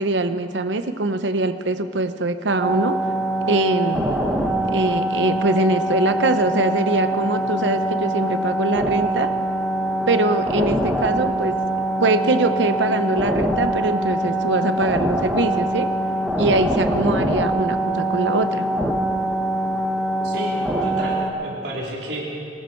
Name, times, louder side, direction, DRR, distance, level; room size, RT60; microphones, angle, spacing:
voice 1, 0.0-3.0 3.5-4.1 4.7-9.3 10.1-11.6 12.0-15.9 16.4-18.6, right 2 dB, 90° right, 9 dB, 0.8 m, -22 dB
sound 1, 2.6-21.3, right 1 dB, ahead, 1.3 m, -23 dB
voice 2, 20.2-22.3, right 1 dB, 70° right, -4 dB, 3.8 m, -31 dB
22.5 x 14.0 x 4.5 m, 2.8 s
head